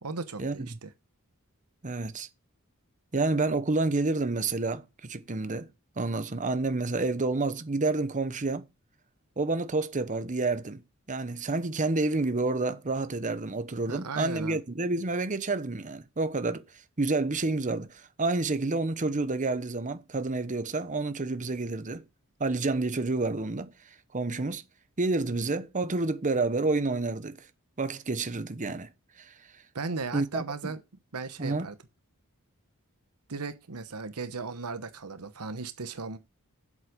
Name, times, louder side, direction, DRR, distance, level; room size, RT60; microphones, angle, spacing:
voice 1, 0.0-0.9 13.9-14.6 29.7-30.8 31.1-31.7 33.3-36.2, right 4 dB, 85° right, 1.0 m, -36 dB
voice 2, 1.8-2.3 3.1-5.7 6.0-8.6 9.4-10.8 11.1-16.6 17.0-22.0 22.4-23.7 24.1-24.6 25.0-27.4 27.8-28.9 29.2-29.3 30.1-30.7 31.4-31.7, right 3 dB, 35° right, 0.9 m, -29 dB
8.1 x 7.5 x 5.1 m
head